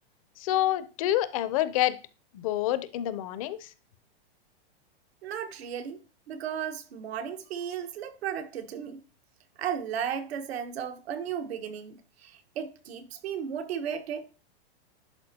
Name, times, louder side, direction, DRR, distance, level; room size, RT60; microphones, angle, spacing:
voice 1, 0.4-2.0 2.3-3.7, left 13 dB, 35° left, 0.5 m, -27 dB
voice 2, 5.2-6.0 6.3-9.0 9.6-14.3, right 8 dB, 80° right, 1.3 m, -35 dB
11.5 x 4.4 x 2.8 m
supercardioid pair, 165°, 31 cm